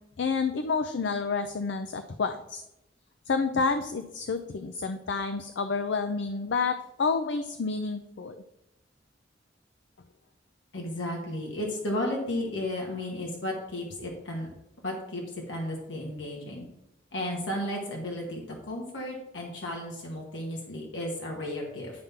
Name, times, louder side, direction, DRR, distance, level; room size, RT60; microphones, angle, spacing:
voice 1, 0.2-2.6 3.3-8.4, left 4 dB, 70° left, 8 dB, 0.5 m, -29 dB
voice 2, 10.7-14.5 14.8-16.7 17.1-21.9, left 1 dB, 90° left, -1 dB, 1.6 m, -34 dB
10.5 x 3.7 x 5.7 m, 0.86 s
head